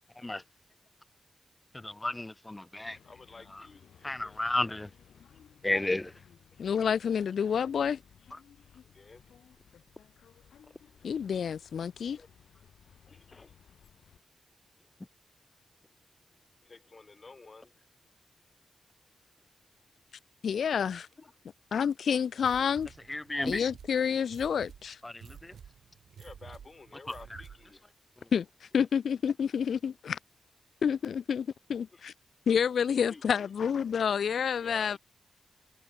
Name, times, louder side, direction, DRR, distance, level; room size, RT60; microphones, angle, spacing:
voice 1, 1.7-3.0 3.5-3.7 4.0-4.9 5.6-6.1 23.1-23.6 25.0-25.6 27.3-27.4, left 2 dB, 15° left, 1.0 m, -33 dB
sound 1, 2.8-14.2, left 8 dB, 90° left, 4.2 m, -59 dB
voice 2, 3.0-4.4 8.9-9.2 12.1-12.3 13.1-13.5 16.6-17.7 21.2-21.3 26.1-27.8 31.9-32.0 32.9-33.5 34.6-35.0, left 3 dB, 35° left, 2.1 m, -52 dB
voice 3, 6.6-8.0 11.0-12.2 20.4-21.1 21.7-22.9 23.4-25.0 28.3-30.2 30.8-32.1 32.5-35.0, left 7 dB, 75° left, 0.4 m, -29 dB
sound 2, 22.4-27.8, right 8 dB, 80° right, 1.4 m, -51 dB
wide cardioid pair, 110°, 0 cm